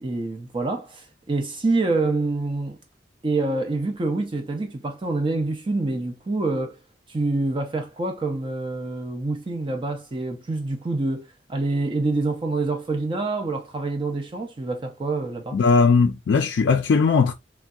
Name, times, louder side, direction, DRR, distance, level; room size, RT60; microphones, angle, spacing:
voice 1, 0.0-2.8 3.2-6.8 7.1-15.6, right 2 dB, 30° right, 0.5 m, -26 dB
voice 2, 15.5-17.3, left 5 dB, 70° left, 0.3 m, -18 dB
3.2 x 2.6 x 2.3 m
head